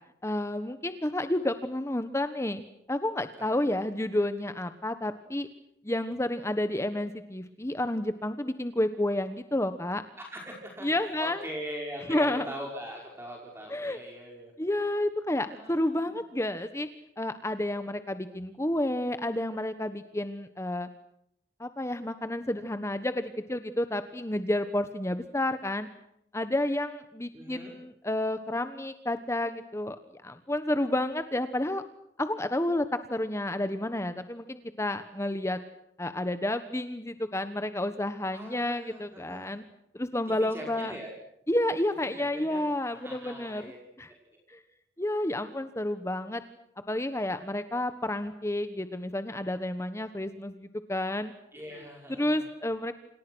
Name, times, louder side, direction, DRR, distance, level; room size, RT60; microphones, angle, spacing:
voice 1, 0.2-5.5 5.8-10.0 10.8-11.4 12.1-12.4 13.7-14.0 14.6-16.9 17.2-20.9 21.6-25.9 26.3-30.0 30.2-31.8 32.2-35.6 36.0-39.6 39.9-40.9 41.5-43.7 44.0-44.1 44.5-44.6 45.0-46.4 46.9-51.3 52.2-52.9, left 1 dB, 15° left, 10 dB, 1.3 m, -30 dB
voice 2, 10.2-10.9 11.2-14.5 15.4-16.2 27.3-27.7 38.3-39.5 40.5-41.1 42.2-43.8 44.3-44.4 51.5-52.5, equal, 15° right, -1 dB, 5.4 m, -42 dB
30.0 x 27.5 x 6.3 m, 0.78 s
head